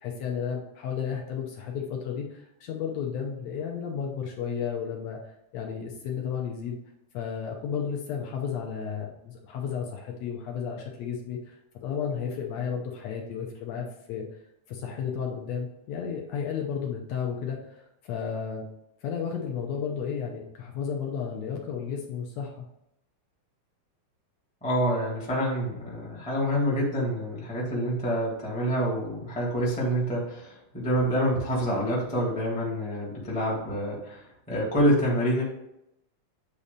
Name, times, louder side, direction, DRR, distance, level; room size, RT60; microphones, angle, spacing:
voice 1, 0.0-6.8 7.1-14.3 14.7-18.6 19.0-22.7, left 7 dB, 70° left, 1 dB, 1.8 m, -33 dB
voice 2, 24.6-34.2 34.5-35.4, equal, 5° left, -5 dB, 0.5 m, -27 dB
8.3 x 2.8 x 5.1 m, 0.83 s
omnidirectional pair, 3.6 m